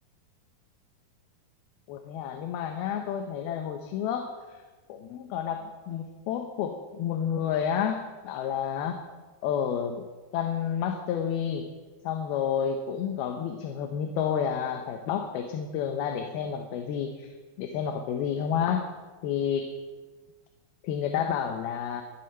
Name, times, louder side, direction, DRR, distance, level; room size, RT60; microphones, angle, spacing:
voice 1, 1.9-4.6 4.9-9.0 9.4-10.0 10.3-11.7 12.0-17.3 17.6-18.9 19.2-19.7 20.8-22.0, left 8 dB, 85° left, 4 dB, 2.9 m, -30 dB
23.0 x 7.8 x 5.4 m, 1.3 s
omnidirectional pair, 4.3 m